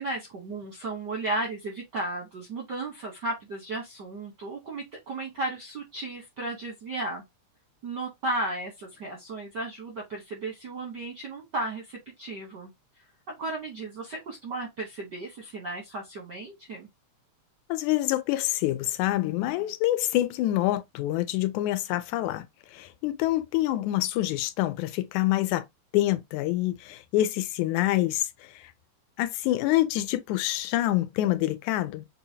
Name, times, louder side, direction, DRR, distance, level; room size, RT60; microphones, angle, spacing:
voice 1, 0.0-7.2 7.8-12.7 13.3-16.9, right 2 dB, 70° right, 1.0 m, -34 dB
voice 2, 17.7-22.5 22.7-25.6 25.9-28.7 29.2-32.1, left 15 dB, 85° left, 2.0 m, -26 dB
6.8 x 2.8 x 2.7 m
omnidirectional pair, 3.4 m